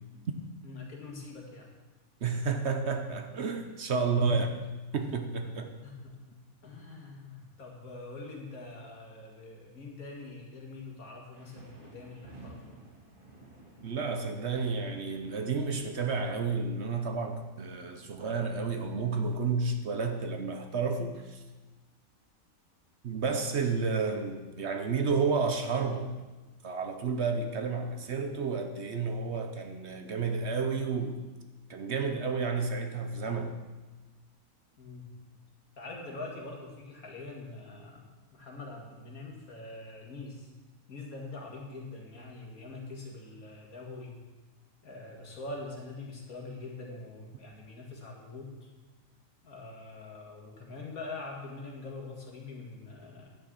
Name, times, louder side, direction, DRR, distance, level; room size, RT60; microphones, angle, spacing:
voice 1, 0.6-1.7 5.8-6.2 6.6-12.8 34.8-35.1 35.8-40.5 40.9-44.2 44.8-48.7 49.4-53.3, left 3 dB, 75° left, -1 dB, 2.4 m, -44 dB
voice 2, 2.2-4.5 4.9-5.7 13.8-21.4 23.0-26.2 26.6-31.2 31.7-33.6, right 4 dB, 55° right, 6 dB, 1.0 m, -31 dB
sound 1, 11.3-19.5, right 2 dB, 35° right, 2.4 m, -55 dB
10.5 x 6.4 x 7.5 m, 1.2 s
omnidirectional pair, 1.5 m